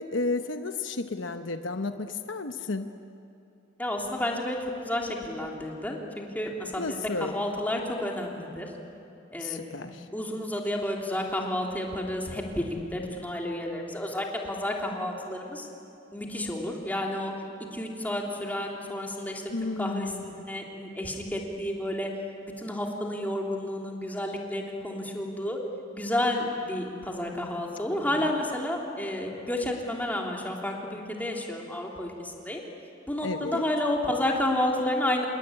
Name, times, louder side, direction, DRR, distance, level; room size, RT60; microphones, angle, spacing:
voice 1, 0.0-2.9 6.8-7.4 9.4-10.0 19.5-20.4 28.1-28.3 33.2-33.7, left 3 dB, 70° left, 8 dB, 1.0 m, -32 dB
voice 2, 3.8-4.6 4.9-8.7 9.3-15.7 16.1-17.3 17.7-19.4 19.8-22.1 22.4-25.6 25.9-32.6 33.1-35.3, left 1 dB, 10° left, -1 dB, 3.4 m, -31 dB
27.0 x 21.0 x 10.0 m, 2.8 s
head